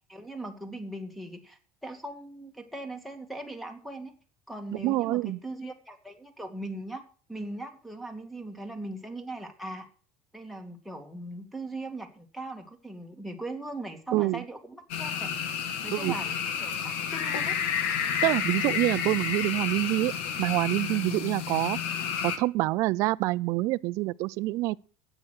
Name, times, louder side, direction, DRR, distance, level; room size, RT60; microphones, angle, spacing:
voice 1, 0.1-4.1 4.5-7.0 7.3-9.9 10.3-15.3 15.8-17.6, right 2 dB, ahead, 2.3 m, -39 dB
voice 2, 4.8-5.4 14.1-14.4 15.9-16.1 18.2-20.1 20.4-21.8 22.2-24.8, right 19 dB, 60° right, 0.5 m, -26 dB
sound 1, 14.9-22.4, left 8 dB, 90° left, 2.1 m, -30 dB
12.5 x 9.1 x 6.5 m
cardioid pair, 135°, 6 cm